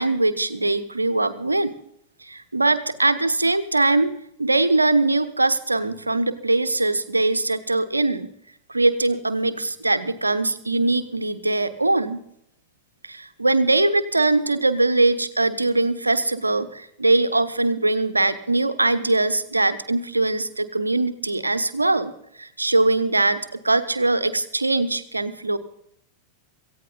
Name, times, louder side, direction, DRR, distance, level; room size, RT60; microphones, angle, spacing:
voice 1, 0.0-1.7 2.2-4.1 4.4-8.3 8.7-12.2 13.0-22.1 22.4-25.6, right 2 dB, 80° right, 13 dB, 1.1 m, -21 dB
17.5 x 15.0 x 4.1 m, 0.72 s
figure-of-eight pair, 90°, 0 cm